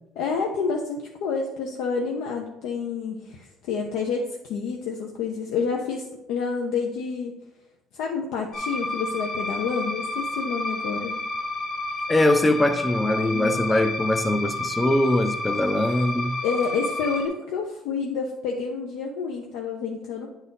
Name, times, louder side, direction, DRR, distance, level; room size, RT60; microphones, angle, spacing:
voice 1, 0.2-7.3 7.9-11.1 13.2-13.7 16.4-20.3, left 5 dB, 80° left, 0.8 m, -29 dB
sound 1, 8.5-17.3, left 2 dB, 50° left, 1.6 m, -30 dB
voice 2, 12.1-16.4, left 1 dB, 15° left, 0.4 m, -22 dB
9.8 x 4.1 x 4.0 m
cardioid pair, 135°, 0 cm